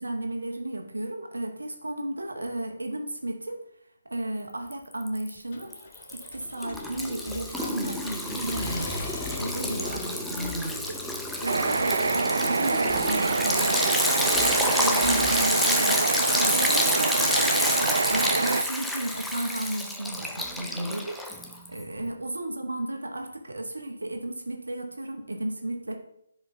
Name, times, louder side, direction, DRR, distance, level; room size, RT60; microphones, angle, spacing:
voice 1, 0.0-3.6 4.0-5.7 6.1-9.0 9.3-11.0 11.4-26.0, right 1 dB, 85° right, 4 dB, 1.4 m, -33 dB
Liquid, 4.7-5.3 5.6-21.8, left 1 dB, 5° left, 0.6 m, -29 dB
Accelerating revving vroom, 5.5-13.8, left 1 dB, 50° left, 1.6 m, -41 dB
sound 1, 11.4-18.6, right 4 dB, 65° right, 0.5 m, -26 dB
10.5 x 4.9 x 3.4 m, 0.76 s
figure-of-eight pair, 145°, 0 cm